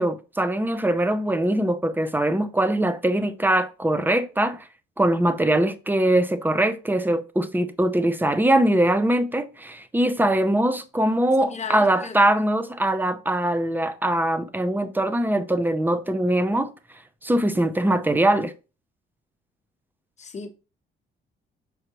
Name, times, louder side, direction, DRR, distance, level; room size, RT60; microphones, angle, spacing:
voice 1, 0.0-4.6 5.0-16.7 17.2-18.5, right 1 dB, 10° right, 0.7 m, -22 dB
voice 2, 11.4-12.2 20.2-20.5, left 5 dB, 35° left, 1.1 m, -35 dB
6.6 x 4.7 x 3.0 m
cardioid pair, 90°, 20 cm